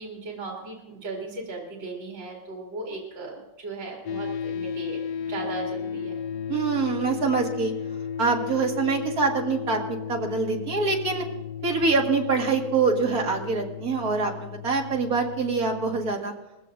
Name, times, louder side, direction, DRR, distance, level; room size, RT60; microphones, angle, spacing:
voice 1, 0.0-6.1, right 3 dB, 65° right, -2 dB, 3.5 m, -37 dB
sound 1, 4.1-16.2, left 7 dB, 70° left, 0.9 m, -34 dB
voice 2, 6.5-7.7 8.2-11.2 11.6-16.3, right 4 dB, 45° right, 1 dB, 2.2 m, -25 dB
21.0 x 15.5 x 2.6 m, 0.94 s
omnidirectional pair, 2.2 m